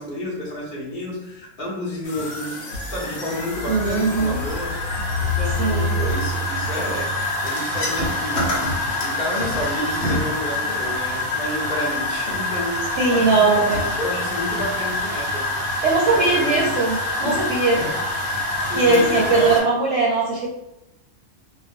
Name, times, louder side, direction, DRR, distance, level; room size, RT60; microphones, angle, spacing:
voice 1, 0.0-2.6 2.9-4.8 5.2-7.1 7.4-8.7 9.0-15.7 16.1-16.7 17.7-17.9 18.6-19.6, left 1 dB, 45° left, -5 dB, 0.8 m, -30 dB
sound 1, 2.0-19.6, left 2 dB, 70° left, 1.1 m, -25 dB
voice 2, 3.7-4.4 5.6-5.9 13.0-13.8 15.8-17.8 18.7-20.5, right 3 dB, 70° right, -3 dB, 0.8 m, -20 dB
2.5 x 2.1 x 2.5 m, 0.88 s
omnidirectional pair, 1.3 m